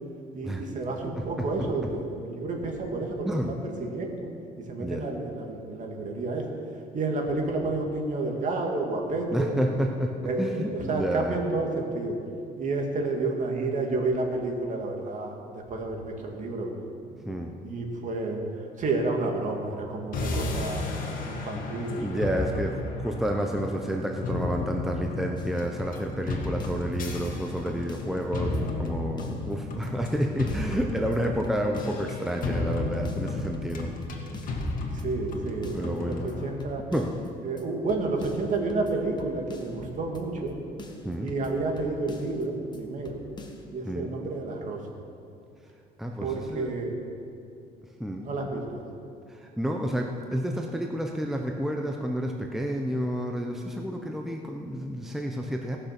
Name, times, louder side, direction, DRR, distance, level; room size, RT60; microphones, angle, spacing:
voice 1, 0.3-4.3 4.6-6.5 6.9-9.5 10.2-12.2 12.6-16.7 17.1-20.8 21.2-22.1 22.3-22.4 34.9-36.8 37.4-40.6 41.2-43.2 43.7-44.8 46.2-46.9 48.2-48.8, right 3 dB, 50° right, 1 dB, 2.2 m, -30 dB
voice 2, 3.3-3.6 4.8-5.1 9.3-10.1 10.4-11.4 17.3-17.6 22.0-33.9 35.6-36.3 36.9-37.1 41.0-41.3 43.8-44.1 46.0-46.7 48.0-48.3 49.3-55.8, equal, ahead, 2 dB, 0.8 m, -30 dB
sound 1, 20.1-36.5, left 2 dB, 55° left, 2.0 m, -33 dB
sound 2, 25.4-27.0 27.2-27.3 27.6-29.5 29.8-30.2 30.5-32.1 32.4-32.5 32.7-34.7 35.0-35.3 35.6-37.3 37.6-37.7 37.9-39.9 40.1-40.5 40.8-42.4 42.7-42.8 43.0-43.6, left 2 dB, 25° left, 1.4 m, -46 dB
18.0 x 6.7 x 6.0 m, 2.5 s
cardioid pair, 110°, 17 cm